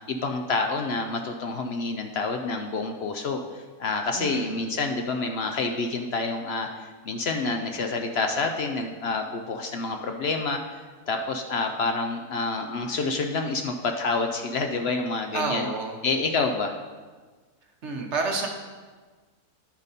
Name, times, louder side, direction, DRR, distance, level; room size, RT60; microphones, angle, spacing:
voice 1, 0.0-10.6 11.1-15.7 16.0-16.7, left 3 dB, 60° left, 4 dB, 0.6 m, -28 dB
voice 2, 4.1-4.5 15.3-16.0 17.8-18.5, right 3 dB, 55° right, 2 dB, 1.1 m, -29 dB
10.5 x 5.1 x 4.1 m, 1.4 s
omnidirectional pair, 1.6 m